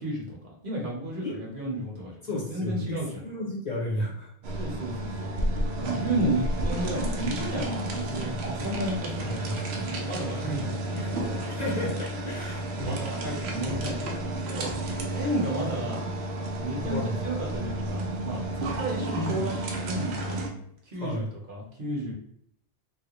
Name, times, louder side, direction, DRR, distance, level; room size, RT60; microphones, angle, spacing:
voice 1, 0.0-3.1 4.6-5.3 5.8-9.5 9.8-10.7 11.0-11.4 12.8-14.7 15.1-16.0 16.6-20.4 20.9-22.1, right 1 dB, 55° right, -1 dB, 1.0 m, -33 dB
voice 2, 2.2-4.3 6.1-6.3 9.2-9.8 10.4-11.1 11.5-13.0 16.9-17.2 19.1-19.5 20.9-21.3, left 1 dB, 50° left, -2 dB, 0.6 m, -33 dB
sound 1, 4.4-20.5, right 1 dB, 80° right, 0.9 m, -31 dB
3.1 x 2.4 x 2.9 m, 0.71 s
omnidirectional pair, 1.1 m